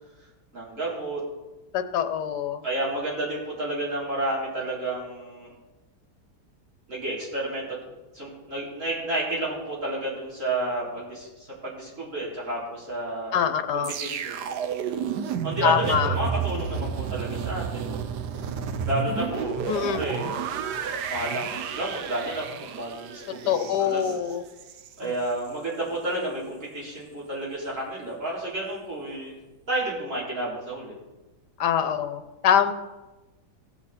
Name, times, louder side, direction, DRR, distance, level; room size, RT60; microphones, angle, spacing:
voice 1, 0.5-1.2 2.6-5.5 6.9-7.6 8.1-13.4 13.7-14.5 15.4-18.0 18.8-20.4 21.1-24.2 25.0-29.3 29.7-30.9, right 2 dB, 45° right, -6 dB, 4.2 m, -31 dB
voice 2, 1.7-2.6 13.3-13.9 15.6-16.1 19.7-20.1 23.5-24.4 25.0-25.1 31.6-32.7, left 8 dB, 75° left, 10 dB, 1.4 m, -24 dB
sound 1, 13.8-24.9 25.3-25.5, right 6 dB, 75° right, 1.3 m, -31 dB
17.0 x 7.5 x 4.2 m, 1.1 s
omnidirectional pair, 1.8 m